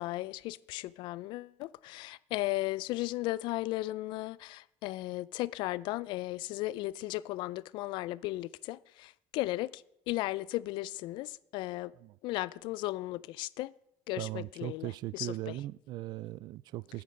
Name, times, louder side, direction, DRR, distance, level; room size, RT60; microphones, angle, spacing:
voice 1, 0.0-11.9 12.2-13.7 14.1-15.6, left 18 dB, 70° left, 0.4 m, -36 dB
voice 2, 14.2-17.0, right 16 dB, 55° right, 0.3 m, -39 dB
9.8 x 9.4 x 5.1 m
cardioid pair, 135°, 8 cm